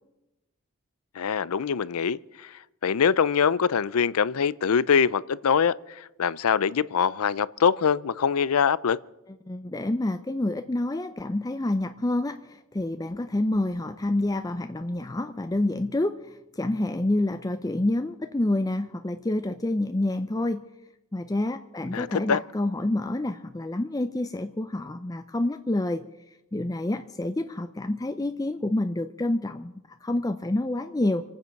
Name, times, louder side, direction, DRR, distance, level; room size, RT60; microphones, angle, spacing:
voice 1, 1.1-9.0 21.9-22.4, left 6 dB, 80° left, 0.5 m, -24 dB
voice 2, 9.5-20.6 21.1-26.0 26.5-31.2, left 1 dB, 15° left, 0.4 m, -28 dB
26.5 x 9.2 x 5.8 m
head